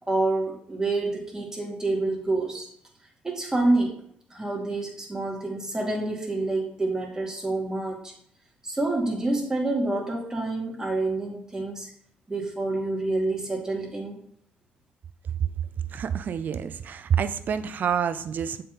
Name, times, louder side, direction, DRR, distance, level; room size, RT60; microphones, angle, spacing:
voice 1, 0.0-2.7 3.2-4.0 4.3-8.1 8.6-11.9 12.3-14.2, right 2 dB, 15° right, 0 dB, 2.1 m, -27 dB
voice 2, 15.9-18.6, right 8 dB, 60° right, 12 dB, 0.5 m, -27 dB
6.9 x 5.0 x 3.8 m, 0.66 s
supercardioid pair, 75°, 4 cm